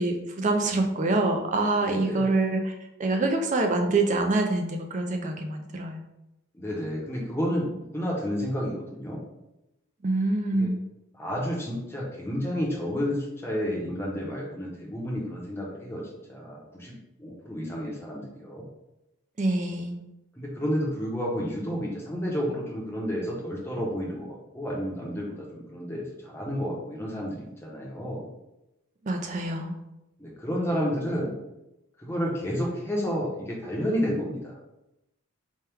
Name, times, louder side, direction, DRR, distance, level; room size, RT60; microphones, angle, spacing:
voice 1, 0.0-2.7 3.0-6.0 10.0-10.8 19.4-20.0 29.0-29.8, right 2 dB, 35° right, 4 dB, 0.4 m, -25 dB
voice 2, 1.8-2.3 6.6-9.2 10.5-10.7 11.1-16.0 16.3-18.7 20.4-28.2 30.2-31.3 32.0-34.6, equal, 10° left, -3 dB, 0.7 m, -31 dB
4.4 x 2.2 x 3.4 m, 0.93 s
head